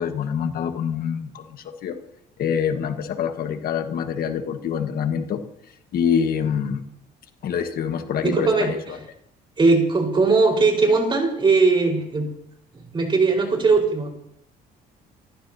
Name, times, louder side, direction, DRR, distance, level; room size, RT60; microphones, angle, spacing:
voice 1, 0.0-2.0 2.4-5.4 5.9-6.8 7.4-8.8, left 7 dB, 60° left, 6 dB, 1.5 m, -25 dB
voice 2, 8.2-8.7 9.6-12.3 12.7-14.1, right 4 dB, 30° right, 1 dB, 4.6 m, -19 dB
27.0 x 14.0 x 2.8 m, 0.72 s
cardioid pair, 110°, 17 cm